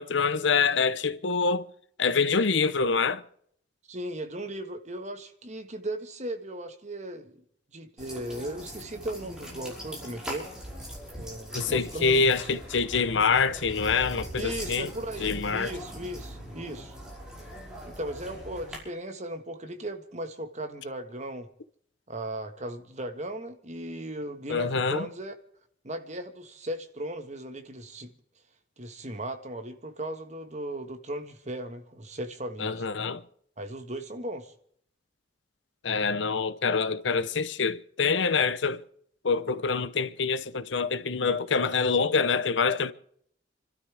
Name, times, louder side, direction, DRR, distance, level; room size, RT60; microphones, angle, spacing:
voice 1, 0.0-1.6 2.0-3.2 11.5-14.9 15.2-15.7 24.5-25.1 32.6-33.2 35.8-38.8 39.2-42.9, left 5 dB, 85° left, 0.9 m, -25 dB
voice 2, 3.9-7.4 7.7-10.5 11.2-12.3 14.3-16.9 17.9-21.5 22.1-25.3 25.8-28.1 28.8-32.9 33.6-34.5, right 1 dB, 40° right, 1.6 m, -37 dB
sound 1, 8.0-18.8, equal, 5° right, 5.6 m, -41 dB
29.5 x 12.5 x 3.5 m
head